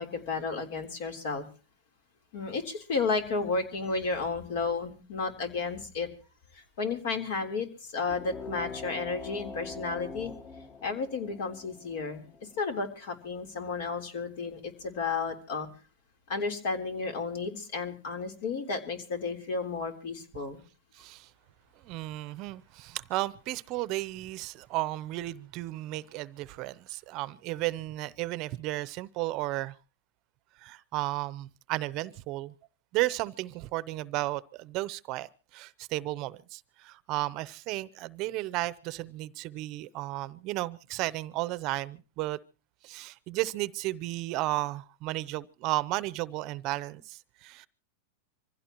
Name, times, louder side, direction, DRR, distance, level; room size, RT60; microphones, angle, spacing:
voice 1, 0.0-1.5 2.3-6.1 6.5-10.3 10.8-15.7 16.3-20.6, left 4 dB, 65° left, 3.6 m, -32 dB
sound 1, 8.0-13.2, left 4 dB, 35° left, 2.4 m, -43 dB
voice 2, 20.9-21.3 21.9-29.7 30.6-32.5 32.9-42.4 42.8-47.7, right 18 dB, 45° right, 0.7 m, -34 dB
25.5 x 16.0 x 3.0 m
supercardioid pair, 135°, 0 cm